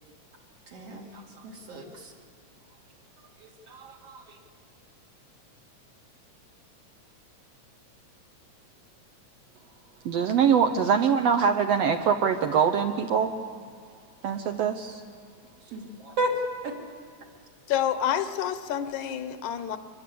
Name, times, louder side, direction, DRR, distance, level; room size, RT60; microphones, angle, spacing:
voice 1, 0.7-2.1 3.4-4.4 15.7-16.3 16.6-16.7, right 1 dB, 55° right, 0 dB, 3.7 m, -34 dB
voice 2, 10.0-13.3 14.2-15.0, right 7 dB, 70° right, 6 dB, 1.8 m, -23 dB
voice 3, 17.7-19.8, left 10 dB, 80° left, 11 dB, 2.4 m, -28 dB
23.5 x 21.0 x 8.5 m, 2.2 s
omnidirectional pair, 3.4 m